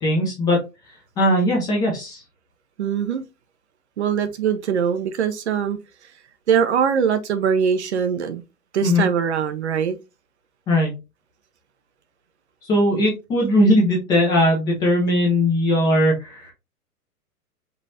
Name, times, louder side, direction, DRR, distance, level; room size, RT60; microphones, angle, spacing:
voice 1, 0.0-0.6 1.2-2.2 8.8-9.1 10.7-11.0 12.6-16.5, left 1 dB, 10° left, 0.5 m, -19 dB
voice 2, 2.8-3.2 4.0-5.8 6.5-8.4 8.7-10.0, right 7 dB, 45° right, 0.6 m, -22 dB
5.3 x 3.0 x 2.7 m
figure-of-eight pair, 115°, 47 cm